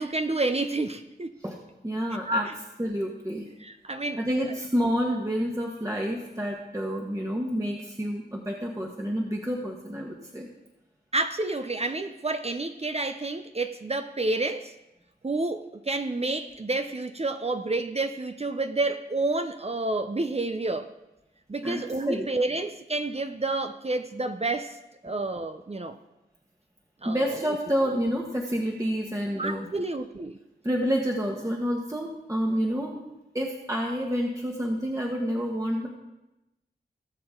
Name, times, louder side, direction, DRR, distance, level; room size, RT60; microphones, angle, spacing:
voice 1, 0.0-1.3 2.3-2.5 3.6-4.2 11.1-14.7 15.2-20.9 21.5-24.8 25.0-26.0 27.0-27.2 29.4-30.4, right 2 dB, 35° right, 8 dB, 0.7 m, -29 dB
voice 2, 1.8-2.5 2.8-3.5 4.2-10.5 21.6-22.3 27.0-29.7 30.6-33.0 33.3-35.9, equal, 15° right, -1 dB, 1.4 m, -29 dB
18.0 x 6.9 x 3.8 m, 0.96 s
cardioid pair, 45°, 19 cm